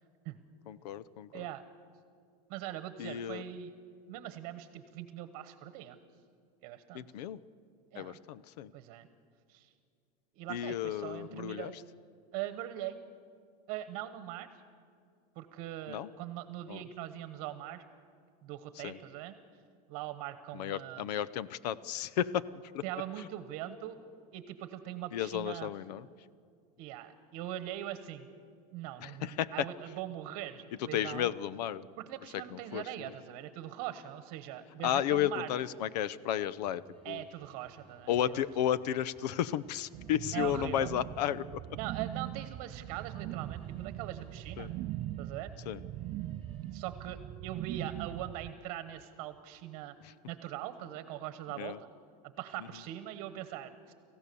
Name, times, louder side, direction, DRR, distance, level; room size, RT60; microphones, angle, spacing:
voice 1, 0.7-1.3 3.0-3.4 6.9-7.4 7.9-8.7 10.5-11.7 15.9-16.1 16.7-16.8 18.8-19.0 20.5-22.4 22.7-22.8 25.1-26.1 29.0-29.5 30.9-31.8 32.3-33.1 34.8-37.2 38.1-41.6 44.6-44.7 45.7-45.8 51.6-51.8, left 11 dB, 85° left, 18 dB, 0.7 m, -33 dB
voice 2, 1.3-1.6 2.5-3.7 4.1-6.0 6.6-7.0 7.9-8.2 8.7-9.1 9.5-9.7 10.3-11.7 12.3-13.0 13.7-14.5 15.3-17.8 18.4-19.3 19.9-21.1 22.8-24.0 24.3-25.7 26.8-28.3 28.7-31.3 32.0-35.6 37.0-38.5 40.3-40.9 41.7-44.7 45.2-45.5 46.7-49.9 50.3-51.9 52.2-53.9, right 12 dB, 55° right, 11 dB, 1.2 m, -41 dB
sound 1, 36.6-46.8, right 2 dB, 5° left, 5.8 m, -62 dB
sound 2, 39.9-48.5, right 13 dB, 30° right, 0.4 m, -41 dB
27.5 x 15.0 x 6.9 m, 2.4 s
supercardioid pair, 150°, 20 cm